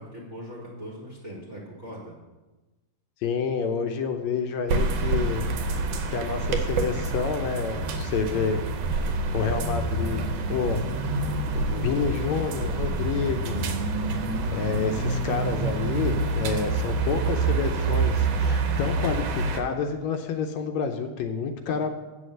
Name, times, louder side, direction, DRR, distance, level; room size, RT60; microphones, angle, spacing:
voice 1, 0.0-2.1, equal, 30° right, -3 dB, 1.4 m, -40 dB
voice 2, 3.2-5.9 6.1-8.6 9.3-10.2 10.5-10.8 11.5-13.7 14.5-21.9, left 5 dB, 75° left, 6 dB, 1.9 m, -29 dB
sound 1, 4.7-19.6, right 3 dB, 70° right, 1.8 m, -27 dB
8.3 x 6.4 x 7.8 m, 1.2 s
omnidirectional pair, 3.4 m